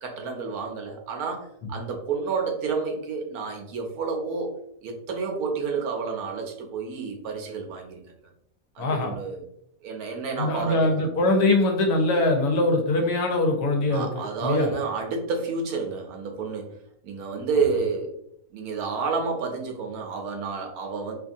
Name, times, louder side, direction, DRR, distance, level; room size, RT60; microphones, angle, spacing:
voice 1, 0.0-4.5 4.8-8.0 8.7-9.4 9.8-11.1 13.8-16.7 17.0-18.1 18.5-21.1, right 5 dB, 70° right, 2 dB, 1.0 m, -30 dB
voice 2, 8.8-9.1 10.4-14.1 14.4-14.7, left 2 dB, 75° left, 3 dB, 1.1 m, -22 dB
2.8 x 2.5 x 2.5 m, 0.74 s
omnidirectional pair, 1.7 m